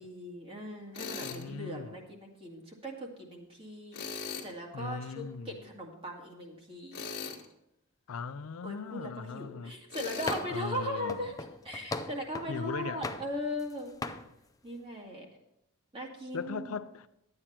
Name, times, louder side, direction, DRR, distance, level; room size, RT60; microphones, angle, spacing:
voice 1, 0.0-4.0 4.4-7.0 8.6-11.4 11.6-14.0 14.6-15.3 15.9-16.7, equal, 25° right, 2.0 m, -39 dB
Tools, 0.9-1.4 3.9-4.5 6.9-7.4 9.9-10.4, left 5 dB, 50° left, 1.6 m, -39 dB
voice 2, 1.2-2.0 4.7-5.6 8.1-9.8 10.5-11.3 12.5-13.1 16.3-17.1, left 5 dB, 65° left, 0.5 m, -39 dB
sound 1, 10.3-10.7 11.1-12.6 13.0-13.7 14.0-14.3, left 2 dB, 15° left, 0.5 m, -38 dB
11.5 x 8.8 x 4.4 m
head